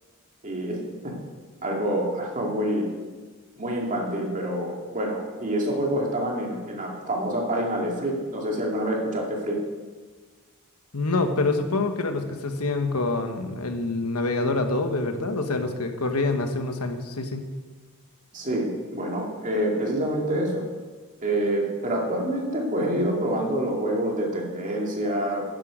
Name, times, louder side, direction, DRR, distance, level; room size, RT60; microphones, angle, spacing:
voice 1, 0.4-1.1 1.6-2.9 3.6-9.6 18.3-20.6 21.2-25.4, right 1 dB, 35° right, -1 dB, 2.4 m, -27 dB
voice 2, 10.9-17.4, left 3 dB, 80° left, 6 dB, 1.3 m, -26 dB
12.0 x 10.5 x 5.1 m, 1.4 s
head